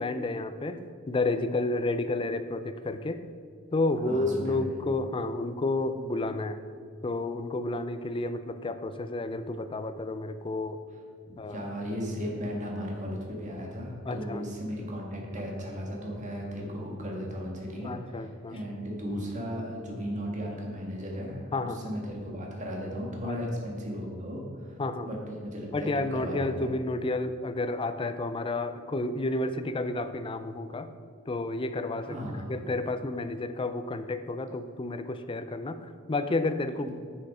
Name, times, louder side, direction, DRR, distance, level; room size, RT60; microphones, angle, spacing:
voice 1, 0.0-3.2 3.7-6.6 7.0-10.8 11.4-11.6 14.0-14.4 17.8-18.6 21.5-21.9 23.2-23.4 24.8-25.1 25.7-30.9 31.3-32.2 32.5-36.9, left 2 dB, 25° left, 9 dB, 0.4 m, -31 dB
voice 2, 4.0-4.8 11.2-24.8 25.0-26.7 32.0-32.5 36.8-36.9, equal, 35° right, -1 dB, 1.6 m, -36 dB
7.8 x 6.6 x 4.9 m, 2.1 s
head